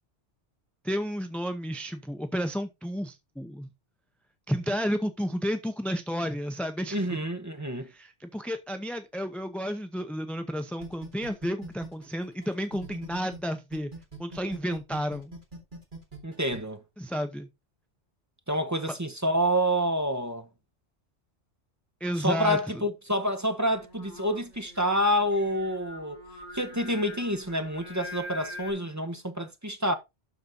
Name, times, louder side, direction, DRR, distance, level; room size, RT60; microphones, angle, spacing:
voice 1, 0.8-3.7 4.5-7.2 7.8-13.9 14.2-15.3 17.0-17.5 22.0-22.8, equal, ahead, 0.6 m, -32 dB
voice 2, 6.9-7.9 16.2-16.8 18.5-20.5 22.2-26.2 26.5-29.9, equal, 15° right, 1.0 m, -28 dB
sound 1, 10.8-13.4 13.7-16.6, right 4 dB, 45° right, 2.9 m, -42 dB
Singing, 23.7-28.7, left 1 dB, 45° left, 4.1 m, -44 dB
12.0 x 4.2 x 3.9 m
omnidirectional pair, 1.2 m